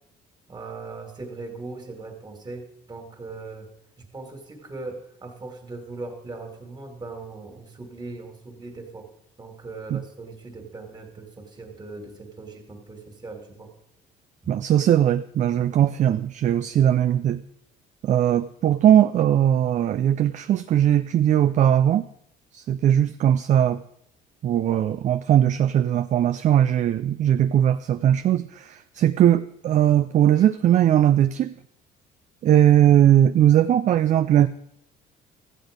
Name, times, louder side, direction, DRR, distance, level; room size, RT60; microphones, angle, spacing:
voice 1, 0.5-3.7 4.0-9.1 9.4-13.7 14.4-14.6 30.4-30.5, right 3 dB, 25° right, 4 dB, 2.2 m, -39 dB
voice 2, 14.5-17.4 18.0-22.0 22.5-23.8 24.4-31.5 32.4-34.5, right 10 dB, 45° right, 11 dB, 0.4 m, -19 dB
14.0 x 8.1 x 5.1 m, 0.75 s
cardioid pair, 110°, 17 cm